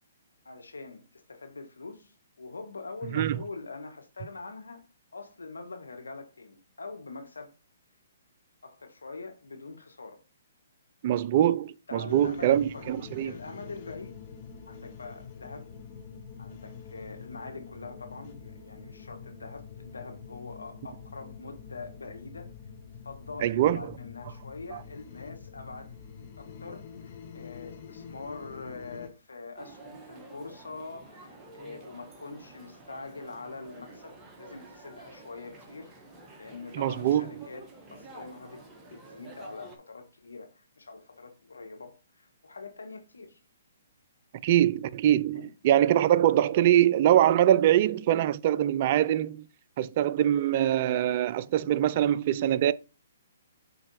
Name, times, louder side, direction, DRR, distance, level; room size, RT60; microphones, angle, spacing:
voice 1, 0.4-2.1 2.4-7.5 8.6-10.2 11.9-13.0 13.2-14.2 14.6-15.7 16.4-22.5 23.0-25.9 26.4-35.9 36.4-37.7 37.9-43.4 45.3-45.5, left 3 dB, 85° left, 1.3 m, -44 dB
voice 2, 11.0-13.3 23.4-23.9 24.7-24.8 36.7-37.2 44.4-49.4 49.8-52.7, right 11 dB, 45° right, 0.4 m, -23 dB
sound 1, 12.1-29.1, left 6 dB, 40° left, 0.9 m, -46 dB
sound 2, 29.6-39.8, right 2 dB, 15° right, 1.4 m, -50 dB
5.0 x 4.1 x 4.7 m
hypercardioid pair, 135°, 0 cm